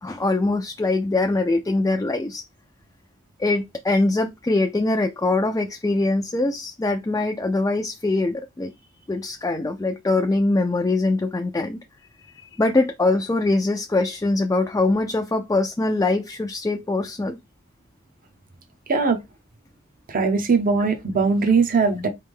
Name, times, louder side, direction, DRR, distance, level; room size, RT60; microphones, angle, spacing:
voice 1, 0.0-2.4 3.4-8.7 9.1-11.8 12.3-17.4, left 2 dB, 15° left, 0.4 m, -23 dB
voice 2, 20.1-22.1, right 4 dB, 40° right, 0.7 m, -20 dB
4.0 x 3.3 x 3.5 m
head